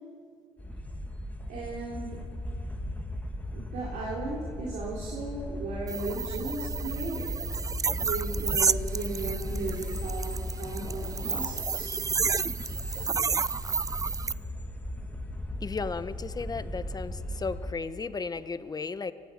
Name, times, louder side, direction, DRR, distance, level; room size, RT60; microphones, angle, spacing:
sound 1, 0.6-17.7, left 1 dB, 10° left, 2.1 m, -37 dB
voice 1, 1.5-2.2 3.5-7.4 8.0-12.0, right 3 dB, 80° right, -4 dB, 3.7 m, -36 dB
sound 2, 5.9-14.3, right 5 dB, 25° right, 0.5 m, -31 dB
voice 2, 15.6-19.1, left 4 dB, 30° left, 13 dB, 1.2 m, -34 dB
25.0 x 16.0 x 9.2 m, 2.4 s
supercardioid pair, 65°, 13 cm